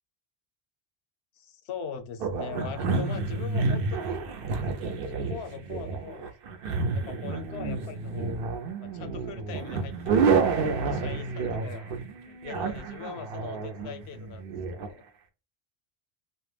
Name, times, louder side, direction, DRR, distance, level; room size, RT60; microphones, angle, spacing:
voice 1, 1.4-4.2 4.8-6.3 6.9-8.3 8.8-10.3 10.7-11.9 12.3-15.0, left 7 dB, 85° left, 0.8 m, -41 dB
sound 1, 2.2-14.9, right 4 dB, 65° right, 0.7 m, -29 dB
2.2 x 2.1 x 3.2 m
omnidirectional pair, 1.0 m